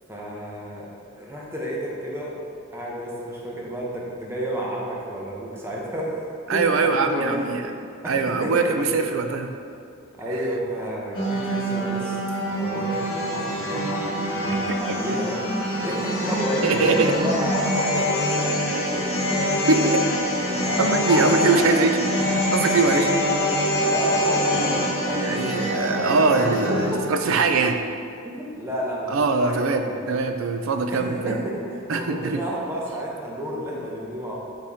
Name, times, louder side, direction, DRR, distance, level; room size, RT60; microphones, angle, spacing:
voice 1, 0.1-2.3 2.7-6.2 6.5-7.7 8.0-8.1 8.4-9.1 10.2-12.2 12.5-14.0 14.4-19.4 19.7-20.0 20.5-21.8 23.8-26.2 26.5-27.0 28.2-30.0 30.9-34.3, right 1 dB, 10° right, -4 dB, 0.8 m, -31 dB
voice 2, 6.5-7.7 8.0-9.5 14.9-15.0 16.6-17.1 19.7-19.9 20.8-23.1 25.1-27.8 29.1-31.4 31.9-32.4, right 3 dB, 70° right, 6 dB, 0.5 m, -22 dB
sound 1, 11.1-27.0, equal, 80° left, 1.2 m, -25 dB
6.5 x 4.2 x 3.6 m, 2.4 s
head